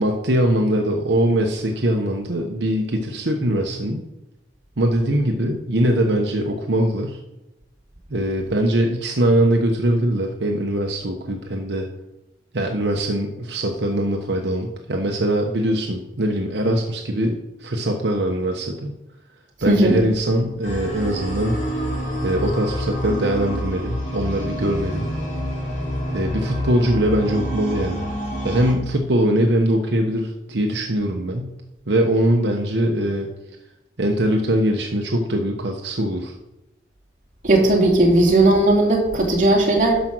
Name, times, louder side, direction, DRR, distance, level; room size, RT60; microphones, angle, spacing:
voice 1, 0.0-4.0 4.8-7.2 8.1-11.9 12.5-18.9 19.6-21.6 22.2-25.1 26.1-28.1 28.4-31.5 31.9-33.3 34.0-36.3, right 1 dB, 75° right, 2 dB, 1.0 m, -22 dB
voice 2, 19.7-20.0 37.4-40.0, right 2 dB, 45° right, -2 dB, 2.5 m, -16 dB
sound 1, 20.6-28.7, equal, 40° left, 3.3 m, -27 dB
12.0 x 5.2 x 6.1 m, 0.94 s
head